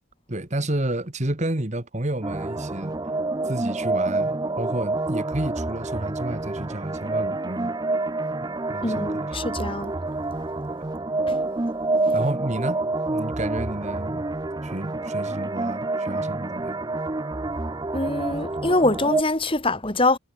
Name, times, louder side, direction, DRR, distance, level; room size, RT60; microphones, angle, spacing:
voice 1, 0.3-3.0 3.4-7.8 8.4-9.4 12.1-12.8 13.1-14.2 14.6-16.8, right 1 dB, 35° right, 1.7 m, -30 dB
sound 1, 2.2-19.2, right 2 dB, 20° right, 0.5 m, -28 dB
voice 2, 8.8-9.9 11.3-11.4 17.9-20.2, left 2 dB, 25° left, 2.7 m, -24 dB
head